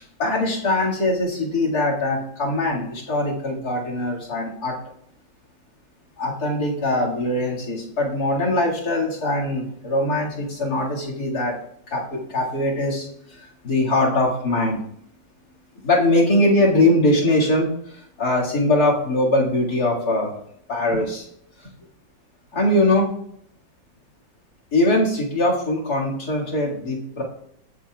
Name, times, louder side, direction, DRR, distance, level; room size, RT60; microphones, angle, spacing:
voice 1, 0.0-4.8 6.2-11.5 11.9-14.8 15.8-20.3 20.7-21.3 22.5-23.1 24.7-27.2, left 1 dB, 50° left, -3 dB, 2.6 m, -22 dB
21.0 x 7.1 x 2.4 m, 0.71 s
omnidirectional pair, 2.1 m